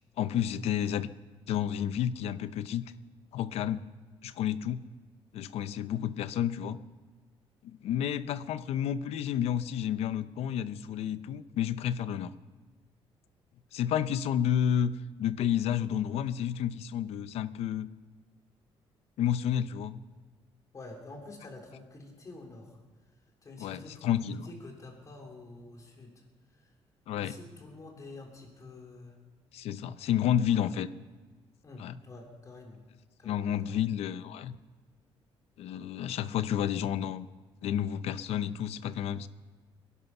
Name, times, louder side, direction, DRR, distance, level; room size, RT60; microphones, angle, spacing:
voice 1, 0.2-1.1 1.5-2.8 3.3-3.8 4.2-4.8 5.3-6.8 7.6-12.3 13.7-14.9 15.2-17.9 19.2-20.0 23.6-24.5 27.1-27.3 29.5-30.9 31.8-31.9 33.2-34.5 35.6-37.3 37.6-39.3, left 10 dB, 85° left, 14 dB, 0.7 m, -30 dB
voice 2, 20.7-22.8 23.4-26.2 26.6-26.7 27.2-29.1 30.4-30.7 31.6-32.8 33.2-33.8, left 2 dB, 35° left, 1 dB, 3.5 m, -48 dB
22.0 x 11.0 x 5.5 m, 1.4 s
cardioid pair, 135°, 10 cm